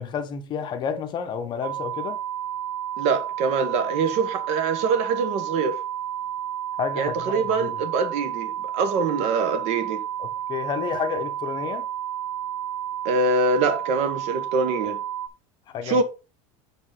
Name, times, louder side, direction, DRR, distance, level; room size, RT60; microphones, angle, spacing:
voice 1, 0.0-2.2 6.8-7.7 10.2-11.8 15.7-16.0, left 6 dB, 30° left, 0.9 m, -30 dB
sound 1, 1.6-15.3, right 10 dB, 75° right, 0.7 m, -31 dB
voice 2, 3.0-5.8 7.0-10.0 13.0-15.0 15.8-16.0, right 4 dB, 45° right, 1.3 m, -24 dB
5.2 x 5.0 x 5.5 m
supercardioid pair, 160°, 15 cm